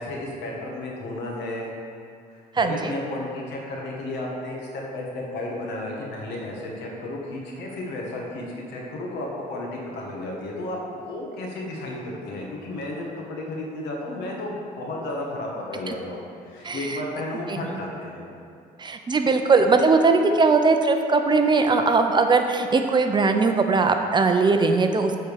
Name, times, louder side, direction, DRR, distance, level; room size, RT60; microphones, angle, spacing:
voice 1, 0.0-1.7 2.3-18.2, left 1 dB, 80° left, -2 dB, 1.8 m, -33 dB
voice 2, 2.5-2.9 15.9-16.0 16.6-17.0 17.5-17.8 18.8-25.2, right 4 dB, 25° right, 5 dB, 0.6 m, -20 dB
8.4 x 4.4 x 7.0 m, 2.3 s
cardioid pair, 110°, 17 cm